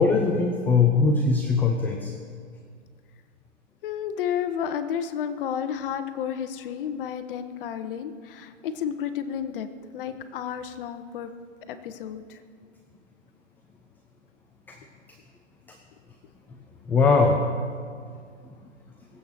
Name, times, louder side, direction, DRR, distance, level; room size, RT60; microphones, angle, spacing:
voice 1, 0.0-2.1 14.7-14.8 15.7-15.8 16.9-17.5, left 4 dB, 5° left, 2 dB, 0.4 m, -21 dB
voice 2, 3.8-11.3 11.7-12.4, left 8 dB, 45° left, 10 dB, 1.1 m, -31 dB
19.5 x 8.1 x 6.7 m, 2.1 s
hypercardioid pair, 135°, 36 cm